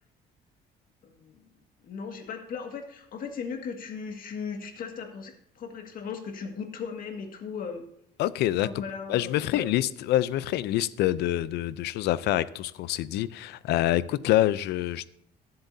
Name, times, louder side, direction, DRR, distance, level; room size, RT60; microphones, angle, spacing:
voice 1, 1.0-1.4 1.8-7.8 8.6-9.7, left 6 dB, 55° left, 2.0 m, -37 dB
voice 2, 8.2-15.1, left 14 dB, 80° left, 0.5 m, -26 dB
20.5 x 7.7 x 2.7 m
cardioid pair, 110°, 17 cm